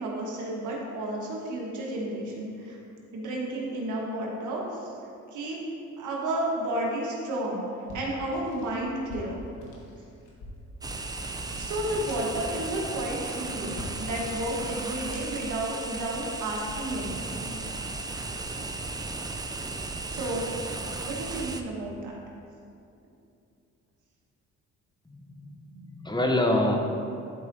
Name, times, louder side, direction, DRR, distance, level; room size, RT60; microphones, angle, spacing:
voice 1, 0.0-2.8 3.1-4.9 5.3-5.6 6.0-7.7 7.9-9.4 11.5-17.5 20.1-20.5 21.0-22.2, right 1 dB, 80° right, -3 dB, 1.4 m, -32 dB
sound 1, 7.8-15.5, left 1 dB, 90° left, 1.2 m, -45 dB
sound 2, 10.8-21.6, right 3 dB, 15° right, 0.4 m, -35 dB
voice 2, 25.1-26.8, left 1 dB, 15° left, 1 dB, 0.7 m, -26 dB
11.0 x 4.7 x 2.7 m, 2.6 s
cardioid pair, 90°, 30 cm